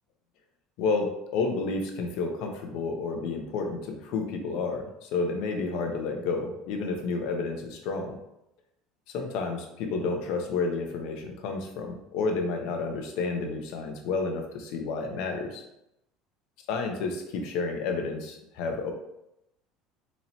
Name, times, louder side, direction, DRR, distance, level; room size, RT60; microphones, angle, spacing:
voice 1, 0.8-8.1 9.1-15.6 16.7-18.9, left 4 dB, 60° left, 3 dB, 0.7 m, -30 dB
4.1 x 2.8 x 2.9 m, 0.84 s
cardioid pair, 175°, 0 cm